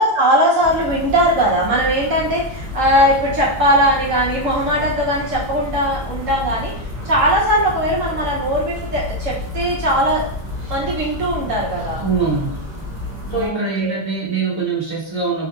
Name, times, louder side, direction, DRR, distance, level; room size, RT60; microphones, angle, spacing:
voice 1, 0.0-6.7 7.1-10.3 10.7-12.0 13.3-14.0, equal, 60° right, -4 dB, 0.9 m, -19 dB
sound 1, 0.6-13.5, left 2 dB, 75° right, 0.3 m, -30 dB
voice 2, 12.0-12.6 13.3-15.5, right 4 dB, 20° right, -7 dB, 0.9 m, -22 dB
2.9 x 2.6 x 2.3 m, 0.71 s
omnidirectional pair, 1.8 m